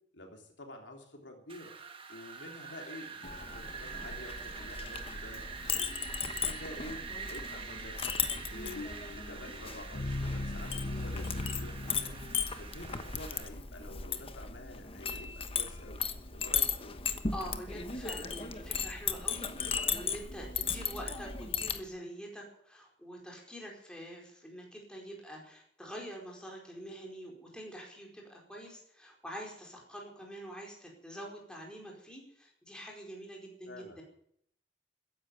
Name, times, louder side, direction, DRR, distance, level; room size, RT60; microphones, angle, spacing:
voice 1, 0.1-1.7 2.1-5.9 6.3-8.8 9.1-12.2 12.6-16.0 16.3-17.0 33.7-34.0, left 1 dB, 75° left, 2 dB, 3.4 m, -49 dB
Wind, 1.5-13.5, right 5 dB, 30° right, 1.8 m, -45 dB
Chink clink, 3.2-21.8, left 6 dB, 30° left, 1.1 m, -37 dB
sound 1, 8.8-12.8, left 2 dB, 60° left, 1.0 m, -38 dB
voice 2, 17.3-34.0, equal, 5° left, -1 dB, 4.6 m, -46 dB
14.5 x 10.5 x 9.4 m, 0.69 s
head